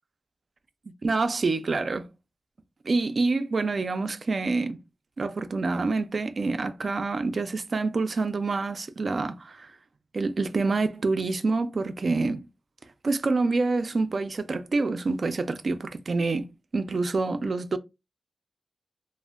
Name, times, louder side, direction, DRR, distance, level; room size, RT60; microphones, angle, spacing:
voice 1, 1.0-2.1 2.8-4.8 5.2-9.7 10.1-12.5 13.0-16.5 16.7-17.8, right 3 dB, 55° right, 0.3 m, -27 dB
2.1 x 2.0 x 3.5 m
wide cardioid pair, 90°, 0 cm